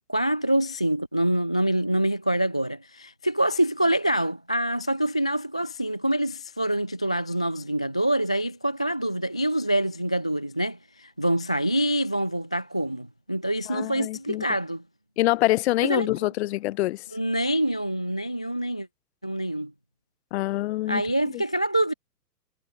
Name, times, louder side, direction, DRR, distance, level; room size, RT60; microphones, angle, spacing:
voice 1, 0.1-14.8 15.8-16.3 17.1-18.9 19.2-19.7 20.9-21.9, right 1 dB, 5° left, 0.4 m, -26 dB
voice 2, 13.7-14.4 15.2-17.0 20.3-21.0 21.3-21.4, left 17 dB, 40° left, 7.2 m, -25 dB
hypercardioid pair, 150°, 48 cm